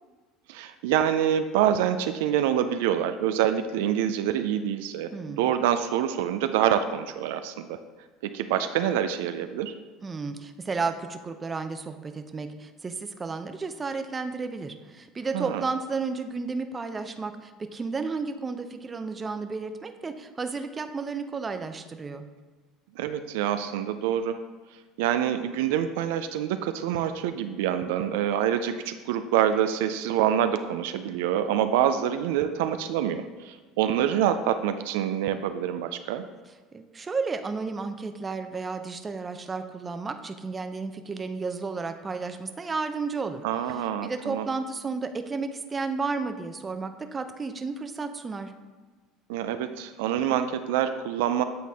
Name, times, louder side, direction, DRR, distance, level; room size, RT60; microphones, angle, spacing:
voice 1, 0.5-7.8 8.2-9.7 15.3-15.6 23.0-24.4 25.0-36.2 43.4-44.5 49.3-51.4, right 10 dB, 85° right, 9 dB, 0.3 m, -26 dB
voice 2, 5.1-5.5 10.0-22.3 36.7-43.4 44.0-48.5, right 4 dB, 25° right, 8 dB, 0.6 m, -32 dB
8.4 x 4.1 x 3.5 m, 1.3 s
supercardioid pair, 100°, 0 cm